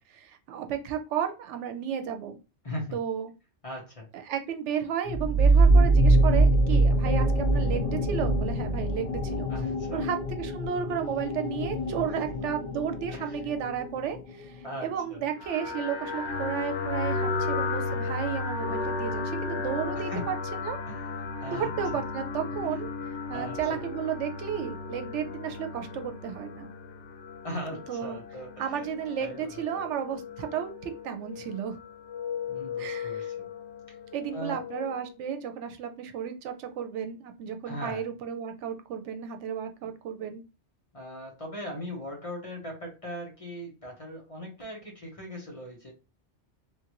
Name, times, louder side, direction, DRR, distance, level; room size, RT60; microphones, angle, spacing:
voice 1, 0.1-2.4 2.9-3.3 4.3-9.5 9.9-20.8 21.5-22.9 23.3-26.7 27.9-28.2 28.6-31.8 32.8-33.3 34.1-40.4, right 8 dB, 85° right, 7 dB, 0.9 m, -33 dB
voice 2, 2.6-3.0 3.6-4.1 9.5-10.0 12.3-12.4 13.1-13.4 14.6-15.2 19.9-20.3 20.9-21.1 21.4-22.0 23.3-23.8 27.4-28.9 29.2-29.8 32.5-33.5 33.9-34.0 34.3-34.6 37.6-38.0 40.9-45.9, equal, 30° left, -1 dB, 1.0 m, -39 dB
sound 1, 5.1-14.4, right 2 dB, 50° left, 0.4 m, -24 dB
sound 2, 15.4-35.1, left 4 dB, 85° left, 1.0 m, -35 dB
3.1 x 2.5 x 2.9 m, 0.30 s
omnidirectional pair, 1.2 m